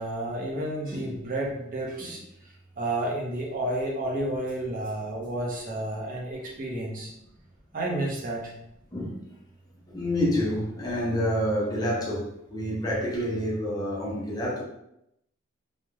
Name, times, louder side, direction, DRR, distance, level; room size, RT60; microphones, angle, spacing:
voice 1, 0.0-2.2 2.8-7.1 7.7-8.5, right 1 dB, 40° right, -2 dB, 0.5 m, -31 dB
voice 2, 9.9-14.6, equal, 20° left, -4 dB, 0.4 m, -28 dB
2.3 x 2.0 x 3.0 m, 0.80 s
head